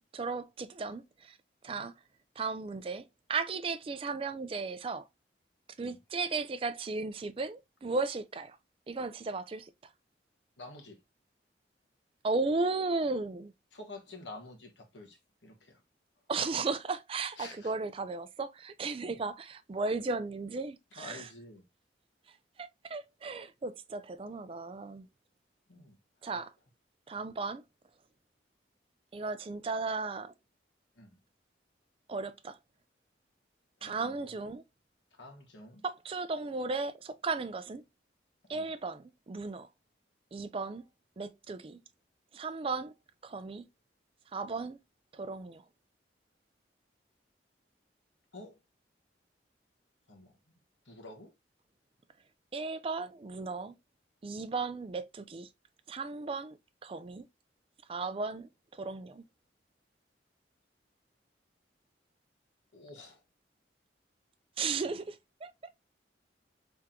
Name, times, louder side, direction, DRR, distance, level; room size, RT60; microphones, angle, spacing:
voice 1, 0.1-1.3 1.6-1.9 2.4-3.0 3.3-5.1 5.8-8.6 8.9-9.7 12.2-13.5 16.3-21.3 22.6-25.1 26.2-26.5 27.1-27.6 29.1-30.3 32.1-32.6 33.8-34.6 35.8-37.8 38.5-39.7 40.3-40.8 41.2-41.8 42.3-42.9 43.2-43.7 44.3-44.8 45.1-45.6 52.5-53.7 54.2-55.5 55.9-57.3 57.9-59.2 64.6-65.5, right 3 dB, 30° right, 0.3 m, -35 dB
voice 2, 10.6-11.0 13.7-15.8 17.4-17.7 19.0-19.2 20.9-21.6 25.7-26.0 26.3-26.4 31.0-31.2 33.8-34.3 35.2-35.8 38.5-38.7 48.3-48.6 50.1-50.4 50.8-51.3 62.7-63.2 64.8-64.9, left 2 dB, 75° left, 1.3 m, -49 dB
3.7 x 3.4 x 2.8 m
head